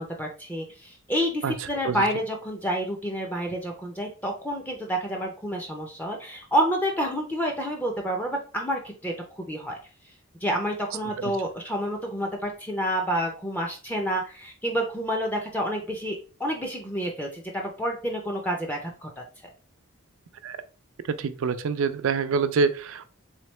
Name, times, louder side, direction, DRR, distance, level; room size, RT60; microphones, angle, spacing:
voice 1, 0.0-9.8 10.4-19.2, equal, 10° left, 1 dB, 0.4 m, -29 dB
voice 2, 21.1-23.1, right 5 dB, 75° right, 12 dB, 0.4 m, -25 dB
3.5 x 3.2 x 3.0 m, 0.36 s
head